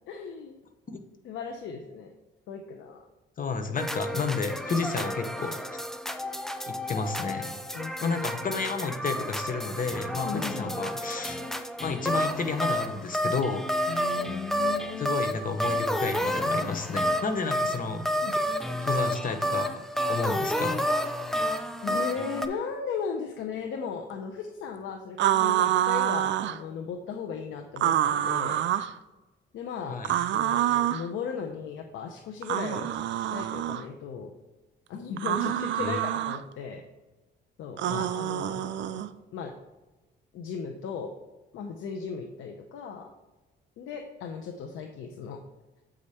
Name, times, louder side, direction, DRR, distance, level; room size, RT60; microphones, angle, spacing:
voice 1, 0.1-0.6 1.2-2.1 2.5-3.0 7.7-8.2 10.2-10.7 13.9-15.2 18.2-18.3 21.8-28.6 29.5-30.0 30.3-32.9 33.3-34.3 34.9-36.8 37.6-39.0 39.3-39.5 40.3-41.1 41.5-43.1 43.8-45.4, left 6 dB, 80° left, 3 dB, 0.8 m, -36 dB
voice 2, 3.4-5.6 6.7-7.6 8.0-11.4 11.8-14.1 15.0-18.0 18.8-19.8 20.1-20.8 29.9-30.1 35.8-36.0 37.9-38.0, left 4 dB, 45° left, 7 dB, 1.1 m, -31 dB
sound 1, 3.8-22.5, equal, ahead, 0.6 m, -30 dB
sound 2, 25.2-26.6 27.8-28.9 30.0-31.1 32.4-33.8 35.2-36.4 37.8-39.1, right 12 dB, 70° right, 0.5 m, -27 dB
8.0 x 5.0 x 4.3 m, 1.1 s
cardioid pair, 90°, 20 cm